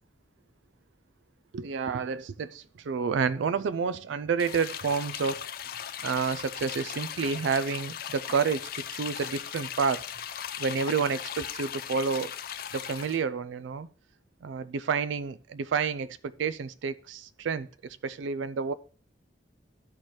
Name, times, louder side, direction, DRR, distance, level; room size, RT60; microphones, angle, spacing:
voice 1, 1.5-5.5 6.0-10.0 10.6-12.3 12.7-13.9 14.4-17.7 18.0-18.7, right 5 dB, 85° right, 0.4 m, -29 dB
sound 1, 4.4-13.2, left 9 dB, 50° left, 0.4 m, -38 dB
13.0 x 4.4 x 3.1 m
head